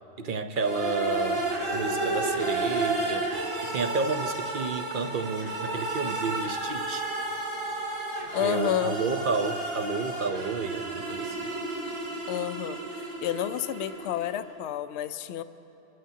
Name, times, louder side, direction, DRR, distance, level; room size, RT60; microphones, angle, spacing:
voice 1, 0.2-1.4 1.7-3.3 3.6-7.0 8.4-11.4, right 4 dB, 50° right, 7 dB, 0.8 m, -31 dB
sound 1, 0.6-14.4, right 2 dB, 90° right, 2.2 m, -32 dB
voice 2, 8.3-9.0 12.3-15.4, left 11 dB, 70° left, 12 dB, 0.8 m, -30 dB
26.0 x 15.5 x 2.8 m, 3.0 s
omnidirectional pair, 1.3 m